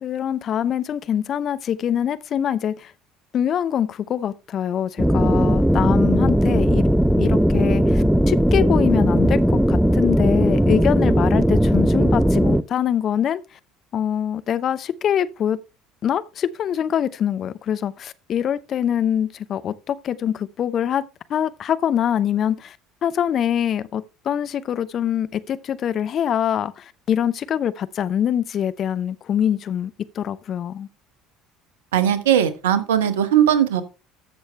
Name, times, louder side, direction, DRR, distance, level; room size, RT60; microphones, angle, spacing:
voice 1, 0.0-2.9 3.3-6.9 7.2-13.4 13.9-15.6 16.0-21.0 21.3-22.8 23.0-30.9, left 9 dB, 45° left, 0.7 m, -24 dB
sound 1, 5.0-12.6, equal, 5° right, 0.6 m, -18 dB
voice 2, 31.9-33.8, right 10 dB, 75° right, 1.1 m, -18 dB
13.5 x 6.4 x 3.3 m
figure-of-eight pair, 60°, 0 cm